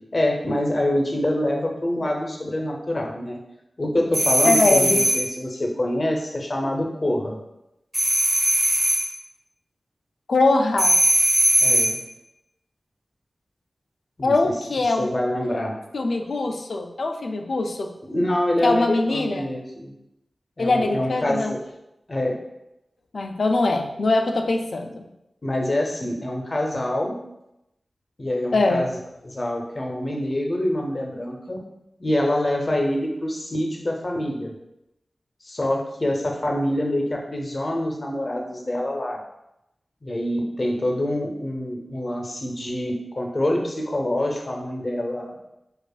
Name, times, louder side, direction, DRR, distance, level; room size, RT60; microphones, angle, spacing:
voice 1, 0.1-3.4 3.8-7.4 11.6-12.0 14.2-14.5 15.0-15.8 18.1-19.9 20.6-21.6 22.1-22.4 25.4-27.2 28.2-29.0 29.2-31.6 32.0-34.5 35.4-39.2 40.0-45.4, left 1 dB, 40° left, 1 dB, 0.6 m, -25 dB
sound 1, 4.1-5.3 7.9-9.1 10.8-12.0, right 1 dB, 25° right, 0.6 m, -19 dB
voice 2, 4.4-5.0 10.3-11.0 14.2-15.1 15.9-17.9 18.6-19.5 20.6-21.5 23.1-25.1 28.5-28.9, left 2 dB, 75° left, 4 dB, 0.3 m, -22 dB
4.8 x 2.3 x 2.3 m, 0.88 s
wide cardioid pair, 75°, 0 cm